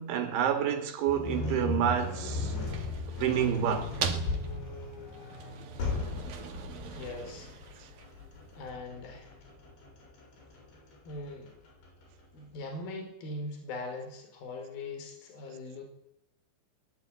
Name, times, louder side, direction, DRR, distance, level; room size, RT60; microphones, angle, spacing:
voice 1, 0.0-2.6 3.1-3.9 7.8-7.9, right 9 dB, 85° right, 4.7 m, -29 dB
sound 1, 1.1-12.2, left 3 dB, 75° left, 9.1 m, -37 dB
sound 2, 2.3-8.4, right 6 dB, 55° right, 3.7 m, -40 dB
voice 2, 6.9-7.5 8.5-9.3 11.1-11.5 12.3-15.8, left 2 dB, 55° left, 6.5 m, -41 dB
22.0 x 21.5 x 9.4 m
omnidirectional pair, 5.2 m